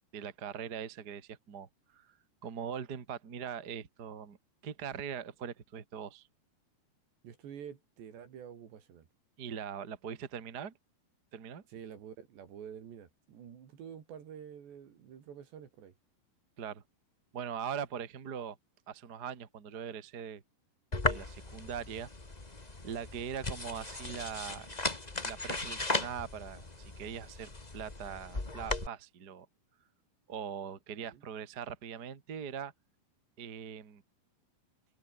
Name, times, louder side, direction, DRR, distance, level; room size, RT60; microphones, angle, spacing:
voice 1, 0.1-2.1 2.4-4.4 4.6-6.3 9.4-10.7 11.3-11.6 16.6-16.8 17.3-18.6 18.9-20.4 21.1-22.1 22.8-24.7 25.2-29.4 30.3-32.7 33.4-34.0, right 7 dB, 35° right, 1.6 m, -41 dB
voice 2, 7.2-9.1 11.7-15.9 31.0-31.2, right 8 dB, 75° right, 5.3 m, -48 dB
sound 1, 20.9-28.9, left 2 dB, 25° left, 0.8 m, -37 dB
omnidirectional pair, 5.0 m